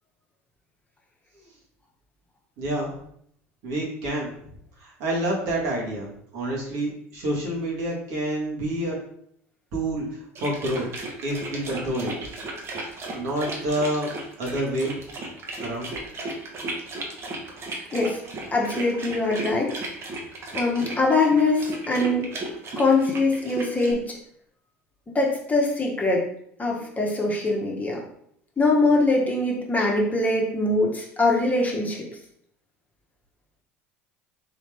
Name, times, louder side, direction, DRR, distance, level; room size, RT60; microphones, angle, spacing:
voice 1, 2.6-2.9 3.6-4.3 4.8-9.0 9.7-10.9 11.2-12.1 13.1-14.1 14.4-15.0 15.6-15.9, right 1 dB, 60° right, -3 dB, 1.6 m, -28 dB
sound 1, 10.4-23.9, right 2 dB, 40° right, 1.1 m, -35 dB
voice 2, 18.5-19.7 20.5-22.3 22.8-24.1 25.1-26.2 26.6-28.0 28.6-32.1, left 2 dB, 20° left, -2 dB, 1.2 m, -23 dB
4.0 x 3.1 x 3.4 m, 0.69 s
hypercardioid pair, 70°, 7 cm